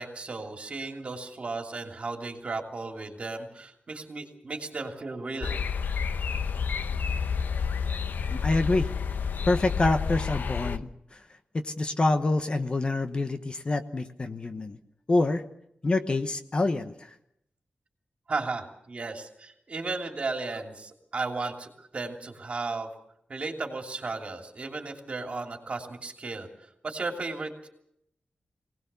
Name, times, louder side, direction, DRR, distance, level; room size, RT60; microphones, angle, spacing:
voice 1, 0.0-5.5 18.3-22.9 23.3-26.5 26.8-27.7, right 3 dB, 40° right, 3 dB, 2.9 m, -35 dB
sound 1, 5.4-10.8, left 6 dB, 70° left, 0.8 m, -29 dB
voice 2, 8.3-8.9 9.5-11.2 11.5-14.8 15.1-15.4 15.8-17.1, left 2 dB, 30° left, 8 dB, 1.0 m, -26 dB
24.0 x 18.5 x 6.9 m, 0.75 s
wide cardioid pair, 175°, 3 cm